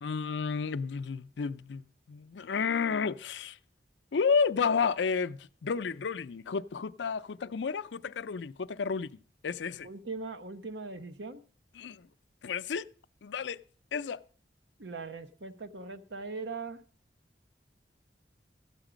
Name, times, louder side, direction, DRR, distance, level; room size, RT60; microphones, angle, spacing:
voice 1, 0.0-3.6 4.1-9.2 9.4-9.9 11.8-12.1 12.4-12.9 13.2-13.6 13.9-14.2, left 5 dB, 90° left, 0.5 m, -31 dB
voice 2, 9.8-11.4 14.8-16.8, right 3 dB, 90° right, 1.0 m, -40 dB
13.5 x 8.9 x 5.0 m
head